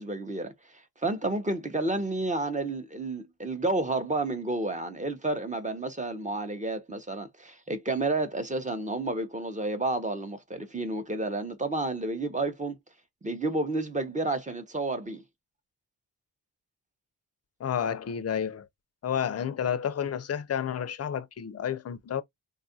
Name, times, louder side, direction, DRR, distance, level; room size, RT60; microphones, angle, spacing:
voice 1, 0.0-12.8 13.2-15.2, right 2 dB, 20° right, 0.6 m, -31 dB
voice 2, 17.6-18.7 19.0-22.2, left 8 dB, 40° left, 0.4 m, -30 dB
3.5 x 2.3 x 2.6 m
wide cardioid pair, 125°, 40 cm